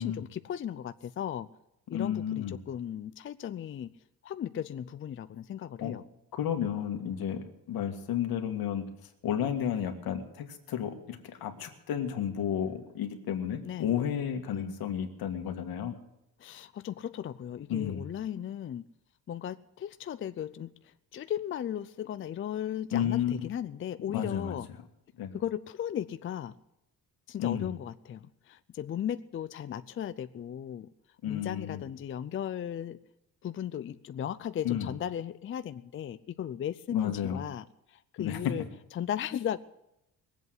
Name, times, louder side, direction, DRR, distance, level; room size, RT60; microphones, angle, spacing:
voice 1, 0.0-1.5 1.9-3.9 4.2-6.0 13.6-13.9 14.5-14.7 16.4-18.8 19.3-24.7 25.3-26.5 27.3-30.9 31.2-33.0 33.4-38.6 38.9-39.6, left 10 dB, 35° left, 12 dB, 0.5 m, -36 dB
voice 2, 1.9-2.6 5.8-6.0 6.3-8.9 9.2-16.0 17.7-18.1 22.9-23.5 24.1-24.6 25.2-25.3 27.4-27.7 31.2-31.8 34.6-34.9 36.9-37.4 38.2-38.4, left 9 dB, 85° left, 6 dB, 2.0 m, -32 dB
21.5 x 8.2 x 7.7 m, 0.84 s
cardioid pair, 150°, 35 cm